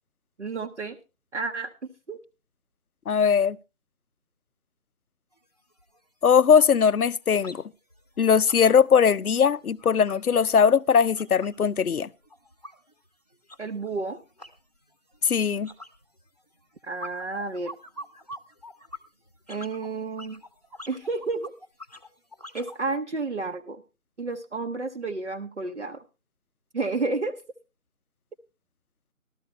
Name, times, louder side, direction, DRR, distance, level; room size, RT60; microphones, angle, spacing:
voice 1, 0.4-1.0 1.3-1.7 2.1-2.2 13.6-14.2 16.9-17.7 19.5-20.4 20.9-21.5 22.5-23.8 24.2-26.0 26.7-27.4, right 3 dB, 55° right, 0.9 m, -31 dB
voice 2, 3.1-3.6 6.2-7.6 8.2-12.1 15.2-15.7, left 7 dB, 85° left, 0.6 m, -20 dB
sound 1, 5.3-5.4 5.8-6.0 6.3-7.6 7.9-11.7 11.9-22.8, left 1 dB, 30° left, 0.8 m, -46 dB
13.5 x 13.0 x 3.1 m
figure-of-eight pair, 165°, 43 cm